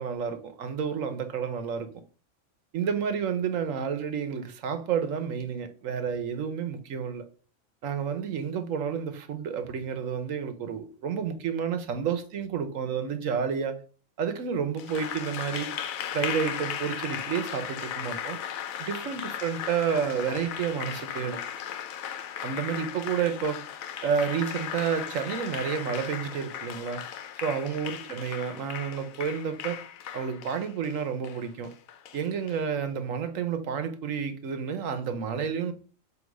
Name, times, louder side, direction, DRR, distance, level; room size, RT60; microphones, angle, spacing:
voice 1, 0.0-1.9 2.7-7.2 7.8-13.8 14.2-15.7 16.1-18.4 18.8-21.4 22.4-23.6 24.0-27.0 27.4-29.8 30.1-31.7 32.1-35.7, right 7 dB, 75° right, 1.3 m, -30 dB
Applause, 14.8-32.6, left 9 dB, 90° left, 1.1 m, -37 dB
7.9 x 3.0 x 5.3 m
omnidirectional pair, 1.4 m